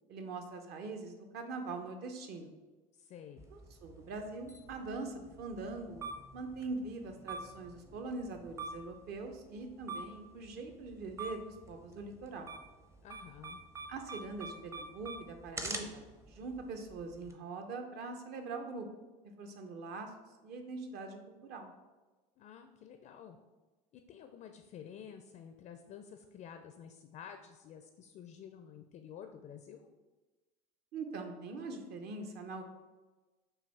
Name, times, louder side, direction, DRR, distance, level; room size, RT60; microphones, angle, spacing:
voice 1, 0.1-2.5 3.5-6.0 6.3-12.5 13.9-18.9 19.4-20.1 20.4-21.7 30.9-32.6, right 3 dB, 55° right, 5 dB, 0.7 m, -43 dB
voice 2, 2.9-3.4 13.0-13.6 22.4-23.4 23.9-29.9, left 8 dB, 40° left, 6 dB, 0.4 m, -51 dB
sound 1, 3.4-17.3, right 3 dB, 15° right, 0.6 m, -47 dB
5.7 x 2.3 x 3.3 m, 1.2 s
hypercardioid pair, 90°, 20 cm